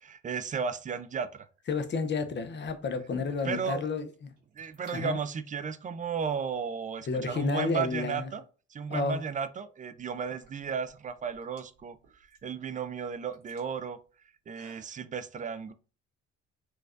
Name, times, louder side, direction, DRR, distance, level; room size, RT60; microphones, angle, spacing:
voice 1, 0.0-1.5 3.4-3.9 4.6-8.4 8.7-14.0 14.5-15.7, right 6 dB, 25° right, 0.3 m, -34 dB
sound 1, 1.5-1.8 2.6-3.7 4.0-4.1 4.3-5.0 5.8-5.9 6.6-7.4 9.1-9.2 9.9-14.9, right 2 dB, 75° right, 1.4 m, -56 dB
voice 2, 1.7-4.3 4.9-5.2 7.1-8.3 8.9-9.2, left 4 dB, 40° left, 0.6 m, -31 dB
4.5 x 2.3 x 2.5 m
cardioid pair, 90°, 30 cm